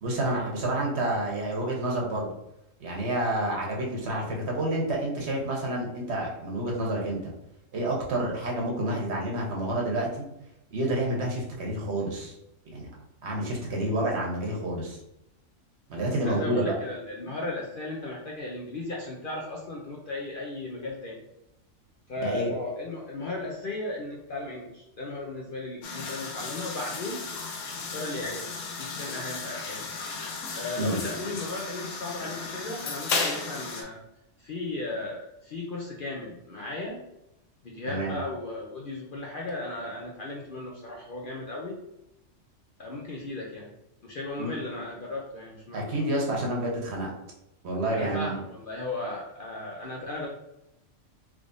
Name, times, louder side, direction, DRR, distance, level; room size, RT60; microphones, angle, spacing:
voice 1, 0.0-2.3 2.8-7.2 7.7-10.3 10.7-12.3 12.7-12.9 13.2-15.0 15.9-16.7 22.2-22.5 30.8-31.0 37.9-38.2 44.4-44.5 45.7-47.1 47.6-48.3, right 1 dB, 60° right, -2 dB, 1.1 m, -29 dB
voice 2, 16.2-21.2 22.1-27.2 27.9-28.5 28.8-29.8 30.5-34.0 34.4-37.0 37.6-41.8 42.8-43.7 44.0-45.9 48.0-50.3, left 2 dB, 55° left, -2 dB, 0.6 m, -36 dB
sound 1, 25.8-33.8, left 4 dB, 75° left, 1.0 m, -34 dB
3.5 x 3.2 x 2.5 m, 0.87 s
omnidirectional pair, 1.4 m